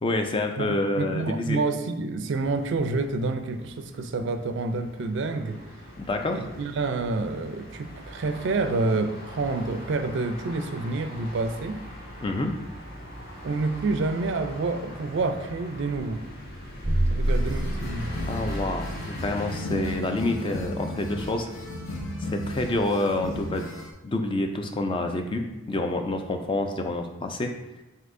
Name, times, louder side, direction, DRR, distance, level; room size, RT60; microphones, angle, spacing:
voice 1, 0.0-1.6 6.0-6.5 12.2-12.5 18.3-21.5 22.2-23.8 24.0-27.5, left 2 dB, 25° left, 5 dB, 0.3 m, -28 dB
voice 2, 0.6-5.6 6.3-11.8 13.4-16.2 17.1-18.1, right 3 dB, 55° right, 8 dB, 0.4 m, -28 dB
sound 1, 2.4-19.6, equal, 45° left, 1.5 m, -42 dB
sound 2, 16.8-19.3, equal, 15° right, 0.7 m, -27 dB
sound 3, 17.2-23.9, left 1 dB, 80° left, 0.8 m, -35 dB
7.6 x 2.7 x 2.5 m, 1.1 s
head